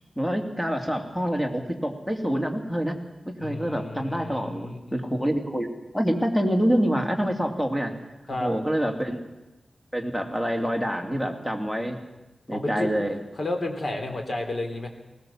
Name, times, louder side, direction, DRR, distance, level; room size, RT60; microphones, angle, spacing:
voice 1, 0.2-2.9 3.3-7.9 8.3-9.2 9.9-12.0 12.5-13.2, equal, 5° left, 4 dB, 2.8 m, -26 dB
voice 2, 3.4-4.8 8.3-8.5 12.5-12.9 13.4-14.9, left 2 dB, 45° left, 4 dB, 3.6 m, -31 dB
20.5 x 18.5 x 7.4 m, 1.0 s
wide cardioid pair, 100°, 0 cm